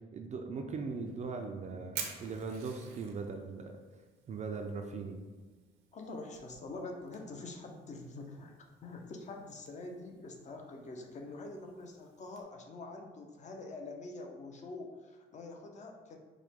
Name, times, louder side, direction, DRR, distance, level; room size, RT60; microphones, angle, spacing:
voice 1, 0.1-3.8 4.3-5.2, right 4 dB, 35° right, 3 dB, 0.4 m, -39 dB
Fire, 0.9-12.4, right 6 dB, 85° right, 0.7 m, -51 dB
voice 2, 5.9-16.2, left 2 dB, 40° left, 3 dB, 0.6 m, -45 dB
4.7 x 2.1 x 3.5 m, 1.3 s
cardioid pair, 110°, 19 cm